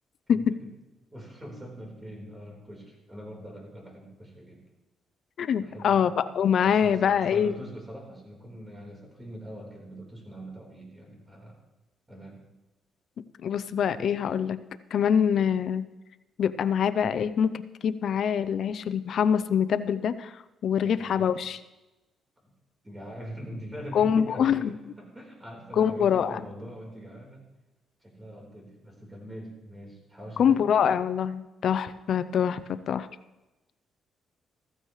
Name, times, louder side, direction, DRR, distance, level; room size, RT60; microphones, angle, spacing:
voice 1, 0.3-0.7 1.1-4.6 5.5-6.3 6.6-11.6 12.1-12.4 20.8-21.4 22.4-22.5 22.8-27.4 28.0-30.6, equal, 20° right, 0 dB, 4.2 m, -43 dB
voice 2, 5.4-7.5 13.4-14.6 14.9-15.8 16.4-20.3 20.6-21.6 23.9-24.7 25.8-26.4 30.4-32.6 32.9-33.1, left 8 dB, 60° left, 13 dB, 0.6 m, -24 dB
14.5 x 14.5 x 3.2 m, 1.0 s
cardioid pair, 90°, 0 cm